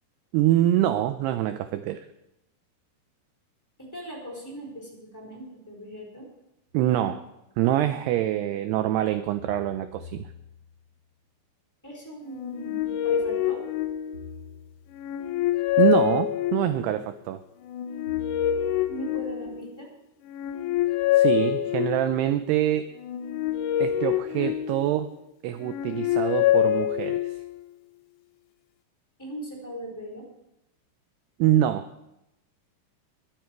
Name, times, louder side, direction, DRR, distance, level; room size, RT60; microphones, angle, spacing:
voice 1, 0.3-2.0 6.7-7.2 7.6-10.3 15.8-17.4 21.1-22.9 23.8-25.1 25.4-27.4 31.4-31.9, right 12 dB, 90° right, 10 dB, 2.3 m, -25 dB
voice 2, 3.8-6.2 11.8-13.6 18.9-19.9 29.2-30.3, right 1 dB, 5° left, -3 dB, 3.4 m, -39 dB
sound 1, 6.7-6.8 9.4-11.0 14.1-15.2 18.1-19.4, left 4 dB, 50° right, 1.5 m, -45 dB
sound 2, 12.3-14.4 14.9-16.9 17.6-19.8 20.2-22.3 23.0-25.1 25.6-27.6, left 12 dB, 80° left, 2.9 m, -26 dB
21.0 x 9.5 x 4.6 m, 0.88 s
omnidirectional pair, 5.4 m